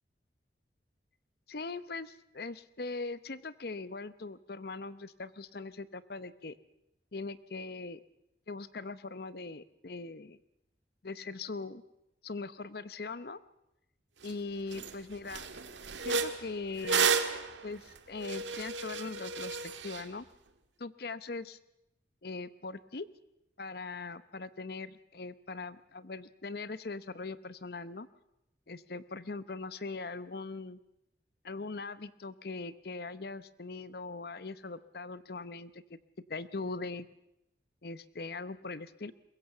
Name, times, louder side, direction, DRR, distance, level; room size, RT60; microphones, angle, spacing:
voice 1, 1.5-6.5 7.1-8.0 8.5-10.4 11.0-11.8 12.2-13.4 14.2-15.5 16.0-17.1 17.6-20.3 20.8-21.6 22.2-23.1 23.6-28.1 28.7-30.8 31.4-36.0 36.3-37.1 37.8-39.1, left 3 dB, 55° left, 15 dB, 0.8 m, -41 dB
sound 1, 14.3-14.4 14.7-14.9 15.3-20.0, right 5 dB, 90° right, 1.7 m, -32 dB
22.5 x 21.5 x 7.1 m, 0.86 s
head